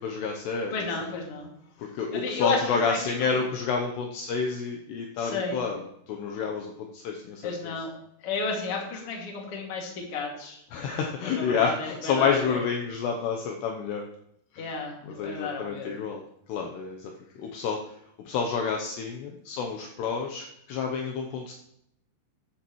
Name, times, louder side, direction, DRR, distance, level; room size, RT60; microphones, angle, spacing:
voice 1, 0.0-0.9 1.8-7.7 10.7-14.1 14.5-14.7 15.1-16.2 16.5-17.1 17.4-18.0 18.3-21.5, left 5 dB, 75° left, 2 dB, 2.7 m, -29 dB
voice 2, 0.7-1.5 2.1-3.0 5.2-5.6 7.4-7.9 8.2-10.6 11.2-12.6 14.6-16.0, left 4 dB, 40° left, -1 dB, 2.3 m, -32 dB
14.0 x 10.0 x 3.1 m, 0.75 s
omnidirectional pair, 5.5 m